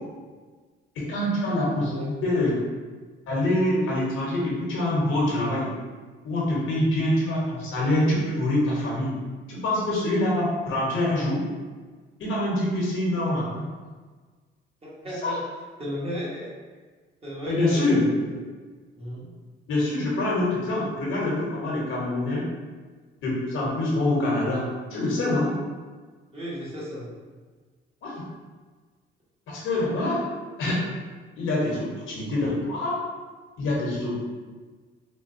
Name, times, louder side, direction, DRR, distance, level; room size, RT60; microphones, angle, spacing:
voice 1, 1.0-2.5 3.3-5.7 6.2-9.1 9.5-11.4 12.2-13.7 15.2-15.4 17.5-18.0 19.7-22.4 23.2-24.6 24.9-25.5 28.0-28.2 29.5-30.2 30.6-30.8 31.4-32.9 33.6-34.2, left 1 dB, 80° left, -5 dB, 1.1 m, -25 dB
voice 2, 1.7-2.5 14.8-15.4 15.8-16.5 17.2-18.4 18.9-19.3 26.3-27.1, equal, 30° right, -7 dB, 1.3 m, -34 dB
3.8 x 2.2 x 2.6 m, 1.4 s
cardioid pair, 90°, 20 cm